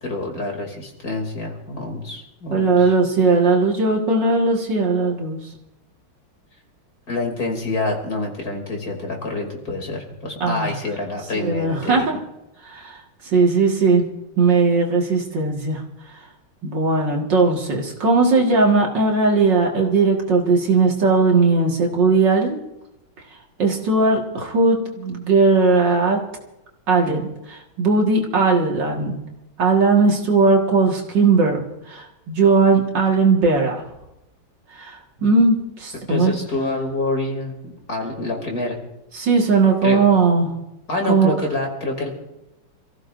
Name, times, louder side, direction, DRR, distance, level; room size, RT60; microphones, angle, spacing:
voice 1, 0.0-2.9 7.1-12.0 36.1-38.7 39.8-40.0 40.9-42.1, left 2 dB, 45° left, 1 dB, 3.2 m, -27 dB
voice 2, 2.5-5.4 10.4-10.7 11.3-12.2 12.7-13.0 13.3-14.1 14.4-15.8 16.6-22.6 23.6-26.2 26.9-29.2 29.6-33.8 34.8-36.3 39.1-40.5 41.1-41.3, right 4 dB, 55° right, 0 dB, 2.4 m, -18 dB
27.5 x 15.5 x 2.6 m, 0.92 s
omnidirectional pair, 2.3 m